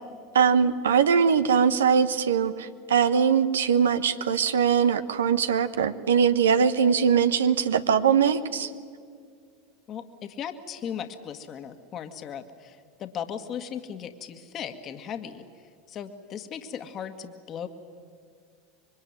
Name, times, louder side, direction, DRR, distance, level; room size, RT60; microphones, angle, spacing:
voice 1, 0.3-8.7, right 7 dB, 80° right, 11 dB, 1.1 m, -21 dB
voice 2, 9.9-15.5 15.9-17.7, left 8 dB, 40° left, 8 dB, 1.8 m, -37 dB
25.5 x 23.0 x 9.7 m, 2.1 s
hypercardioid pair, 85°, 0 cm